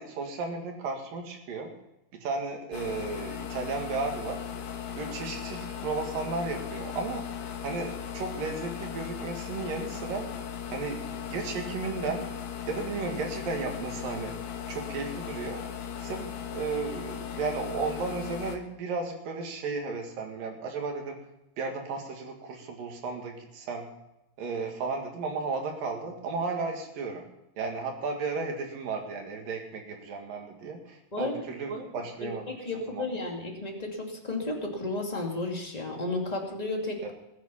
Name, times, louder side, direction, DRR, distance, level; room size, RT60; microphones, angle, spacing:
voice 1, 0.0-1.7 2.1-4.4 5.0-7.3 7.6-10.3 10.7-12.3 12.7-14.4 14.7-15.7 16.0-21.2 21.6-23.9 24.4-27.2 27.6-33.3 37.0-37.1, right 4 dB, 65° right, 2 dB, 3.5 m, -34 dB
sound 1, 2.7-18.6, left 8 dB, 65° left, 2.7 m, -37 dB
voice 2, 32.5-37.1, left 2 dB, 15° left, 0 dB, 1.7 m, -33 dB
20.5 x 9.4 x 5.6 m, 0.90 s
omnidirectional pair, 4.5 m